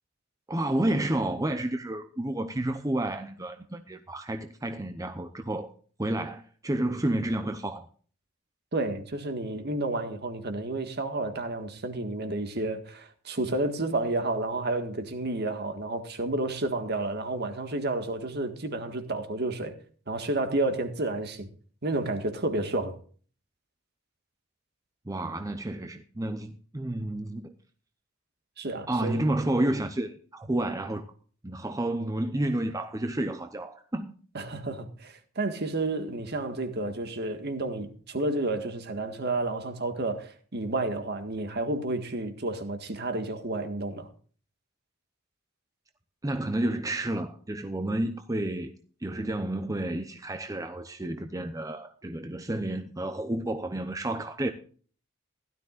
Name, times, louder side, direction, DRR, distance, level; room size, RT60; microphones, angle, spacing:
voice 1, 0.5-5.7 6.0-7.9 25.1-27.6 28.9-31.1 31.4-34.1 46.2-48.7 49.0-54.5, right 1 dB, 15° right, 0.7 m, -30 dB
voice 2, 8.7-19.8 20.1-21.5 21.8-23.0 28.6-29.3 34.3-44.1, right 2 dB, 50° right, 1.8 m, -31 dB
16.5 x 12.5 x 2.5 m
head